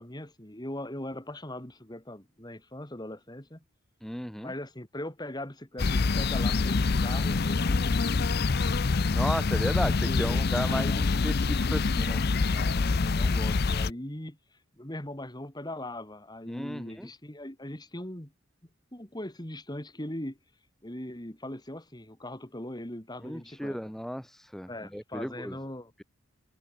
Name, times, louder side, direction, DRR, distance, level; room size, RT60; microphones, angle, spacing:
voice 1, 0.0-3.6 4.4-8.3 9.6-10.4 10.7-11.2 12.1-12.2 12.5-14.4 14.7-18.3 18.9-20.4 20.8-23.9 24.7-25.9, left 1 dB, 20° left, 2.5 m, -40 dB
voice 2, 4.0-4.5 9.1-12.2 16.5-17.1 23.2-25.6, equal, ahead, 0.7 m, -34 dB
sound 1, 5.8-13.9, left 4 dB, 50° left, 0.6 m, -26 dB
head